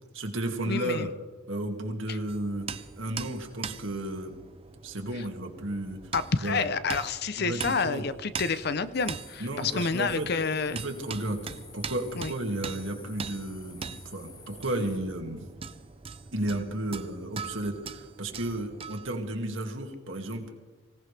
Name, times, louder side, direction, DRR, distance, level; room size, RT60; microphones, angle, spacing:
voice 1, 0.1-1.1 1.5-2.7 3.0-4.3 4.8-6.0 6.4-6.7 7.4-8.0 9.4-10.3 10.7-11.4 11.7-15.5 16.3-20.5, right 1 dB, 65° right, 3 dB, 2.2 m, -33 dB
voice 2, 0.7-1.1 2.1-2.2 5.2-5.3 6.1-10.8 12.2-12.3, left 4 dB, 50° left, 14 dB, 0.6 m, -29 dB
sound 1, 2.3-19.2, right 6 dB, 25° right, 0.4 m, -42 dB
sound 2, 8.9-15.0, left 4 dB, 15° left, 1.0 m, -51 dB
24.5 x 17.5 x 3.4 m, 1.3 s
head